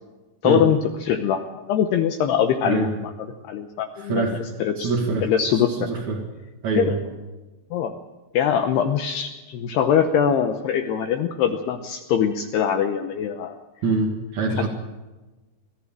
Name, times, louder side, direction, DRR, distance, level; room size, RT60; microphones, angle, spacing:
voice 1, 0.4-1.4 1.7-3.1 3.5-4.9 5.2-5.9 6.8-7.0 7.7-7.9 8.3-13.6, left 8 dB, 75° left, 6 dB, 2.5 m, -22 dB
voice 2, 3.9-4.4 4.8-6.2 6.6-7.0 13.8-14.7, right 3 dB, 50° right, -1 dB, 2.4 m, -25 dB
21.0 x 14.5 x 8.8 m, 1.1 s
omnidirectional pair, 5.6 m